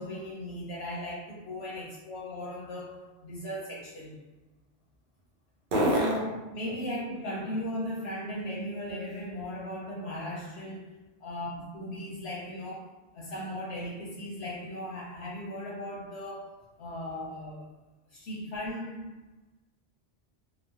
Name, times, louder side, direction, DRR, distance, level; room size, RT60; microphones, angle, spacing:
voice 1, 0.0-4.2 5.9-17.7 18.1-19.2, left 1 dB, 85° left, -5 dB, 0.9 m, -37 dB
sound 1, 0.7-9.8 10.2-14.0, right 1 dB, 60° right, 0.8 m, -38 dB
3.0 x 2.0 x 2.6 m, 1.1 s
omnidirectional pair, 1.1 m